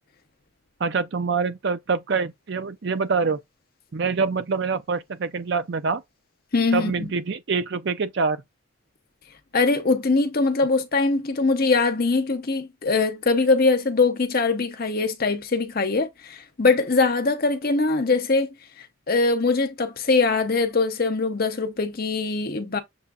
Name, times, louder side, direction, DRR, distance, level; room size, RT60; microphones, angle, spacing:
voice 1, 0.8-3.4 3.9-6.0 6.7-8.4, right 5 dB, 55° right, 0.5 m, -25 dB
voice 2, 6.5-7.1 9.5-18.5 19.1-22.8, left 3 dB, 45° left, 0.7 m, -22 dB
6.8 x 2.5 x 2.4 m
head